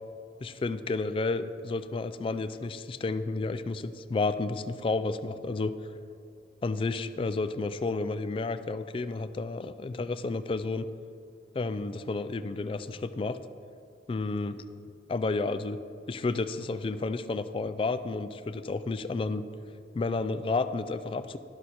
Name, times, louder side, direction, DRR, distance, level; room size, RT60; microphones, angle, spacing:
voice 1, 0.4-5.9 6.6-10.9 11.5-13.4 14.1-14.6 15.1-15.8 16.1-19.4 19.9-21.4, left 3 dB, 30° left, 12 dB, 0.3 m, -31 dB
11.5 x 6.1 x 4.2 m, 2.5 s
head